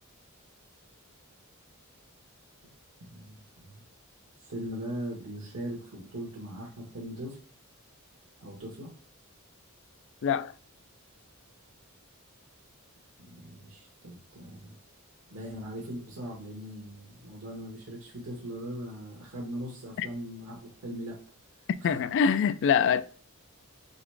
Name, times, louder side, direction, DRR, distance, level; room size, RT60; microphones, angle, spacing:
voice 1, 3.1-3.8 4.4-7.4 8.4-8.9 13.2-14.7 15.3-21.2 21.8-22.0, equal, 75° right, 1.2 m, -40 dB
voice 2, 10.2-10.5 20.0-20.1 21.8-23.0, left 7 dB, 60° left, 0.3 m, -24 dB
3.9 x 3.5 x 3.2 m
head